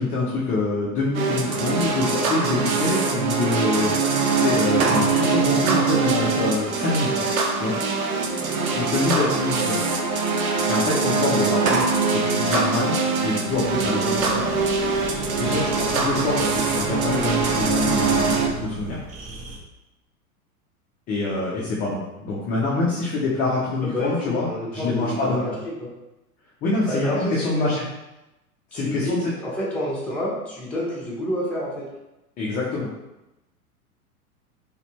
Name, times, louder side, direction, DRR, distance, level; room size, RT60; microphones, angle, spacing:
voice 1, 0.0-3.9 4.4-7.3 7.6-7.7 8.7-9.8 10.7-11.8 12.1-13.0 13.2-14.6 15.4-19.0 21.1-25.4 26.6-27.8 28.7-29.2 32.4-32.9, left 3 dB, 20° left, -6 dB, 0.6 m, -25 dB
sound 1, 1.1-18.5, right 4 dB, 65° right, 0.7 m, -23 dB
sound 2, 13.5-19.6, right 2 dB, 15° right, 0.7 m, -38 dB
voice 2, 23.8-25.5 25.8-25.9 26.9-27.7 28.7-31.9, equal, 5° left, -6 dB, 1.3 m, -29 dB
4.0 x 3.0 x 3.0 m, 0.96 s
figure-of-eight pair, 95°, 45 cm